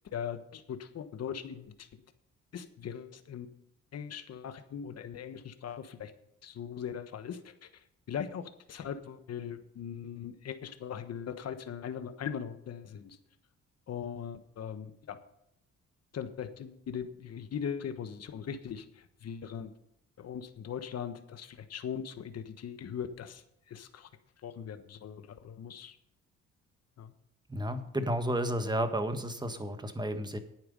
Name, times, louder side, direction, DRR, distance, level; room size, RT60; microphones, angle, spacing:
voice 1, 0.1-1.9 2.5-3.5 3.9-6.1 6.4-7.7 8.1-13.2 13.9-15.2 16.1-19.7 20.2-24.1 24.4-26.0 27.0-27.1, left 8 dB, 55° left, 9 dB, 1.3 m, -40 dB
voice 2, 27.5-30.4, right 1 dB, 15° right, 8 dB, 1.5 m, -32 dB
10.5 x 9.0 x 5.4 m, 0.77 s
cardioid pair, 90°, 30 cm